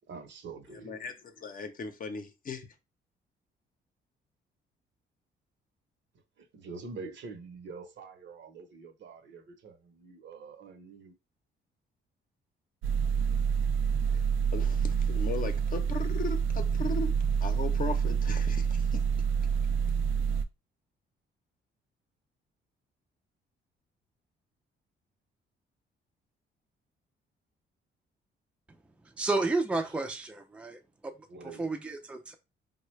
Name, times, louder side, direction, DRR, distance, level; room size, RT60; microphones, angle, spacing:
voice 1, 0.1-1.0 6.1-11.1 29.8-30.0 31.3-31.8, right 4 dB, 65° right, 0.9 m, -46 dB
voice 2, 0.8-2.7 14.5-17.1 17.4-19.0, left 4 dB, 45° left, 0.7 m, -37 dB
sound 1, 12.8-20.4, right 6 dB, 85° right, 0.5 m, -27 dB
voice 3, 29.2-30.8 31.6-32.3, right 3 dB, 5° right, 0.5 m, -31 dB
3.7 x 2.3 x 3.1 m
cardioid pair, 90°, 20 cm